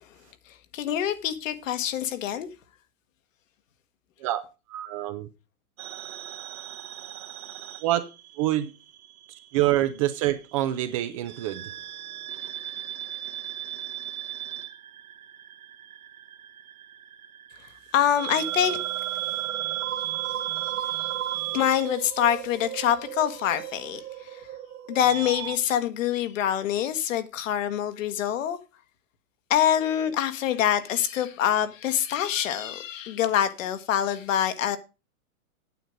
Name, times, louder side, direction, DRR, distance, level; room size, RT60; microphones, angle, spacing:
voice 1, 0.7-2.5 17.9-18.8 21.5-24.0 24.9-28.6 29.5-34.8, left 10 dB, 60° left, 1.5 m, -25 dB
voice 2, 4.7-5.3 7.8-8.0 8.4-8.7 9.5-11.6, right 14 dB, 25° right, 0.5 m, -26 dB
sound 1, 5.8-8.6 8.9-10.1 11.3-25.6, right 13 dB, 75° right, 1.5 m, -35 dB
9.3 x 7.6 x 5.2 m
hypercardioid pair, 140°, 44 cm